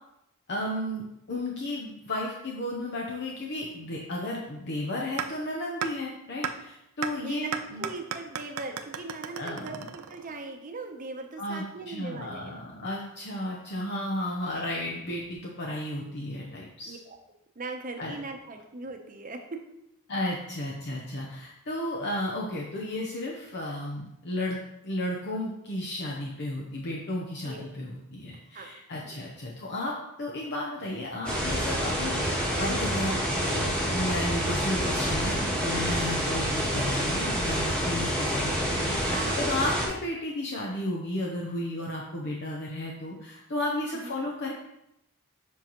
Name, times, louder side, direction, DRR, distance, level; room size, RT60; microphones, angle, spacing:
voice 1, 0.5-7.9 9.4-9.9 11.4-17.0 18.0-18.1 20.1-33.2 33.5-44.5, left 1 dB, 50° left, -2 dB, 0.8 m, -33 dB
sound 1, 5.2-5.3 5.8-5.9 6.4-6.5 7.0-7.1 7.5-10.4, right 7 dB, 90° right, 0.6 m, -33 dB
voice 2, 7.8-12.6 16.9-17.2 17.6-19.6 27.4-27.7 28.5-28.7 29.0-29.2 39.1-39.6 43.9-44.1, right 3 dB, 35° right, 4 dB, 0.8 m, -39 dB
sound 2, 31.2-39.9, equal, 5° left, 1.5 m, -28 dB
7.5 x 5.5 x 3.0 m, 0.84 s
head